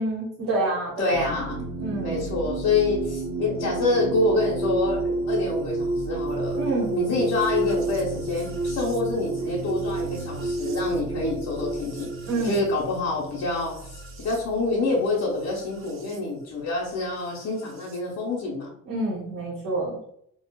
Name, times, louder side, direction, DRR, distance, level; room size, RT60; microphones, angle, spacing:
voice 1, 0.0-1.4 1.8-2.3 6.5-7.0 12.3-12.6 18.9-20.0, right 2 dB, 85° right, -6 dB, 1.0 m, -28 dB
voice 2, 1.0-1.6 2.0-6.6 6.9-12.1 12.4-18.7, left 3 dB, 65° left, -4 dB, 0.8 m, -27 dB
sound 1, 1.1-16.2 17.3-18.0, right 3 dB, 45° right, 0.5 m, -31 dB
2.6 x 2.4 x 2.2 m, 0.70 s
cardioid pair, 90°, 30 cm